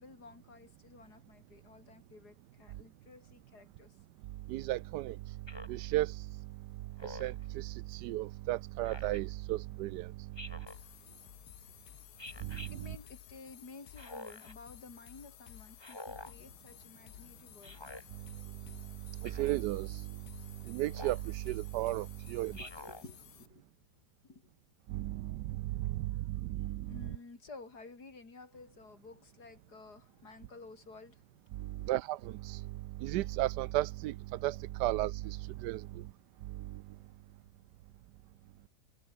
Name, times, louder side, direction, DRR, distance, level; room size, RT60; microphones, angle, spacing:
voice 1, 0.0-3.9 11.6-11.7 12.7-17.9 22.5-23.6 24.2-24.5 25.8-26.3 26.9-31.2 31.7-31.9 35.9-36.0 36.9-37.1, left 3 dB, 70° left, 5.0 m, -53 dB
voice 2, 4.5-5.2 5.7-6.3 7.0-10.1 12.4-13.0 19.2-20.1 20.7-22.6 24.9-27.1 31.9-32.6 33.0-34.1 34.4-35.9, right 16 dB, 85° right, 1.2 m, -34 dB
Speech synthesizer, 5.5-5.8 7.0-7.5 8.8-9.2 10.4-10.8 12.2-12.7 14.0-14.5 15.8-16.3 17.6-18.0 19.2-19.6 20.9-21.3 22.5-23.0, left 1 dB, 15° left, 2.7 m, -47 dB
sound 1, 10.7-23.5, left 12 dB, 85° left, 1.5 m, -54 dB
omnidirectional pair, 1.8 m